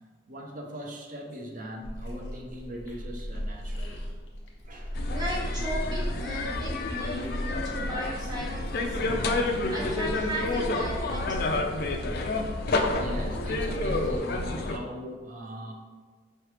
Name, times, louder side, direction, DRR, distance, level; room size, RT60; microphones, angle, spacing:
voice 1, 0.3-4.1 4.6-5.0 12.7-15.7, equal, 45° right, 1 dB, 0.7 m, -40 dB
sound 1, 1.8-14.2, equal, 80° left, 1.2 m, -37 dB
sound 2, 4.9-14.8, left 2 dB, 55° left, 0.4 m, -29 dB
voice 2, 5.1-9.1 9.7-11.7, equal, 20° right, -5 dB, 1.0 m, -36 dB
4.6 x 3.1 x 3.3 m, 1.5 s
head